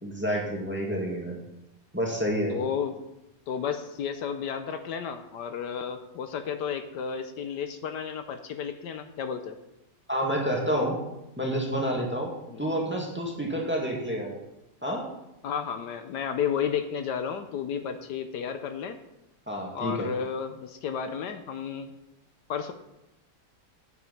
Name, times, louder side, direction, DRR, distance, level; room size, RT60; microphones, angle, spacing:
voice 1, 0.0-1.4 1.9-2.5 10.1-11.0 11.4-12.3 12.6-14.3 14.8-15.0 19.5-20.1, equal, 5° right, -1 dB, 2.0 m, -28 dB
voice 2, 2.5-3.0 3.5-9.6 12.5-12.6 15.4-19.0 19.7-21.9 22.5-22.7, left 7 dB, 75° left, 8 dB, 1.3 m, -32 dB
9.4 x 8.7 x 5.5 m, 0.89 s
omnidirectional pair, 1.9 m